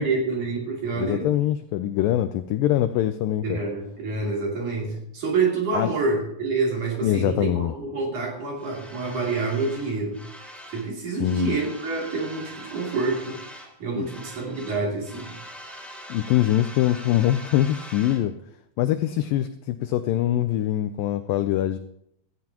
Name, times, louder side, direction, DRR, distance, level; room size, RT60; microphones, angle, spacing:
voice 1, 0.0-1.3 3.4-10.3 10.7-15.3, right 4 dB, 50° right, -1 dB, 4.1 m, -27 dB
voice 2, 1.0-3.6 5.7-5.9 7.0-7.7 11.1-11.5 14.0-14.1 16.1-18.3 18.8-21.8, left 12 dB, 85° left, 10 dB, 2.0 m, -23 dB
sound 1, 8.6-10.9 11.2-13.8 14.0-18.2, equal, ahead, 0.6 m, -43 dB
17.0 x 14.5 x 3.0 m, 0.75 s
omnidirectional pair, 4.5 m